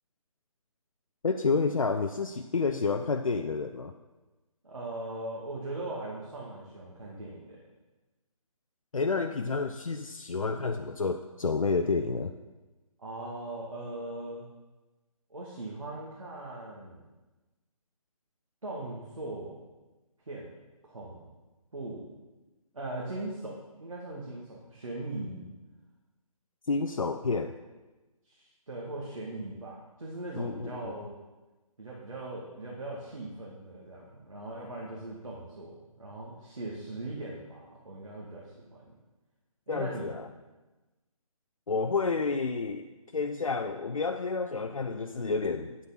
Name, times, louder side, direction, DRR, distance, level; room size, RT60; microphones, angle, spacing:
voice 1, 1.2-3.9 8.9-12.3 26.7-27.5 30.4-30.9 39.7-40.3 41.7-42.9 43.1-45.8, left 4 dB, 65° left, 6 dB, 0.6 m, -30 dB
voice 2, 4.6-7.6 13.0-14.5 15.3-17.1 18.6-19.6 20.3-20.5 20.8-21.3 21.7-22.1 22.7-25.4 28.3-31.2 31.8-39.0 39.7-40.2, right 2 dB, 65° right, -4 dB, 2.0 m, -40 dB
8.9 x 6.1 x 5.7 m, 1.2 s
figure-of-eight pair, 145°, 19 cm